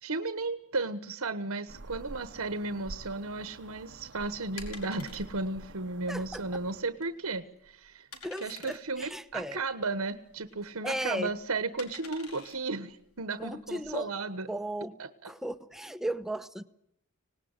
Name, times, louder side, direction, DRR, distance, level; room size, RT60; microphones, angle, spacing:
voice 1, 0.0-8.1 8.4-14.5 15.0-15.3, right 3 dB, 70° right, 11 dB, 1.3 m, -34 dB
sound 1, 1.7-6.8, right 2 dB, 55° right, 0.9 m, -47 dB
sound 2, 3.3-13.9, left 4 dB, 75° left, 4.6 m, -51 dB
voice 2, 6.1-6.4 8.2-9.6 10.8-11.3 13.4-14.1 14.5-15.0 15.2-16.6, right 1 dB, ahead, 11 dB, 0.9 m, -36 dB
25.5 x 19.0 x 9.8 m, 0.80 s
head